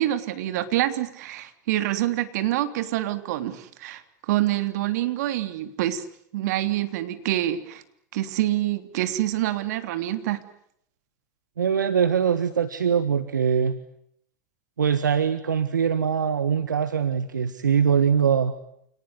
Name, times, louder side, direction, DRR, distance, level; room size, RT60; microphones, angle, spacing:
voice 1, 0.0-6.0 6.3-7.8 8.1-10.4, right 14 dB, 65° right, 10 dB, 3.2 m, -26 dB
voice 2, 11.6-13.8 14.8-18.5, right 7 dB, 90° right, 12 dB, 1.6 m, -22 dB
28.5 x 19.5 x 9.6 m, 0.72 s
hypercardioid pair, 100°, 10 cm